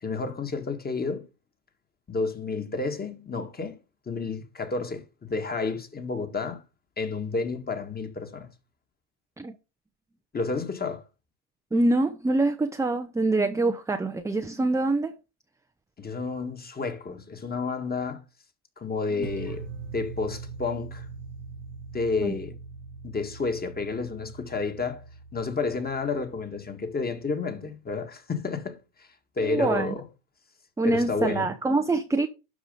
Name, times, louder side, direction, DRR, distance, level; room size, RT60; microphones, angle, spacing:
voice 1, 0.0-1.3 2.1-3.8 4.1-6.6 7.0-8.5 10.3-11.0 16.0-18.2 18.8-19.7 19.9-21.1 21.9-22.6 23.0-25.0 25.3-29.1 29.4-30.0 30.8-31.5, left 4 dB, 20° left, 1.9 m, -30 dB
voice 2, 11.7-15.1 19.2-19.3 22.2-22.3 29.4-29.9 30.8-32.3, right 2 dB, 5° right, 0.7 m, -25 dB
sound 1, 19.2-27.4, right 4 dB, 85° right, 1.4 m, -42 dB
12.0 x 5.0 x 5.2 m
hypercardioid pair, 95°, 49 cm